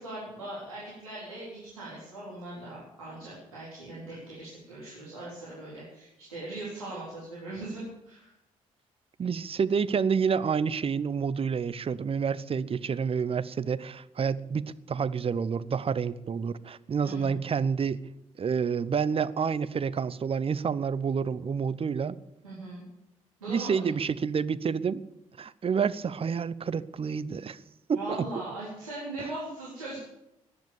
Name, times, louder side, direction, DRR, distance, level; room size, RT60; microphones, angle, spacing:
voice 1, 0.0-8.3 17.0-17.3 22.4-22.8 23.4-24.0 27.9-30.0, right 2 dB, 80° right, -8 dB, 4.1 m, -40 dB
voice 2, 9.2-18.0 18.4-22.2 23.5-25.0 25.4-27.6 27.9-28.2, right 6 dB, 35° right, 16 dB, 0.8 m, -29 dB
18.0 x 11.0 x 7.1 m, 0.86 s
figure-of-eight pair, 45°, 17 cm